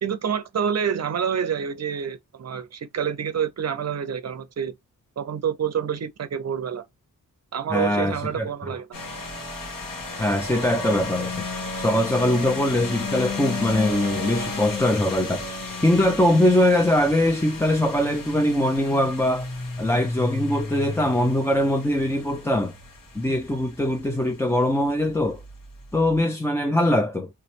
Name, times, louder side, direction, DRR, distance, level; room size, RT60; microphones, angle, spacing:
voice 1, 0.0-4.7 5.2-6.8 7.5-9.0, right 7 dB, 50° right, 0.6 m, -27 dB
voice 2, 7.7-8.5 10.2-11.5 11.8-15.5 15.8-19.5 19.8-22.7 23.1-25.4 25.9-27.3, left 1 dB, 10° left, 0.3 m, -22 dB
sound 1, 8.9-26.2, left 3 dB, 70° left, 1.9 m, -33 dB
3.3 x 3.0 x 2.9 m
wide cardioid pair, 175°, 34 cm